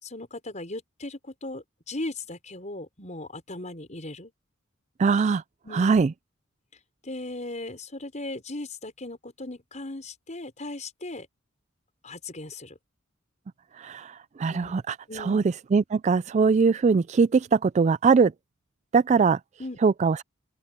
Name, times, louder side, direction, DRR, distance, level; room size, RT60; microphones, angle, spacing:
voice 1, 0.0-4.3 5.6-6.0 7.0-11.3 12.0-12.8 14.5-14.8 15.1-15.5 19.6-19.8, left 2 dB, 35° left, 5.5 m, -37 dB
voice 2, 5.0-5.4 5.7-6.1 13.8-15.4 15.7-18.3 18.9-19.4 19.8-20.2, right 5 dB, 35° right, 0.3 m, -21 dB
open air
head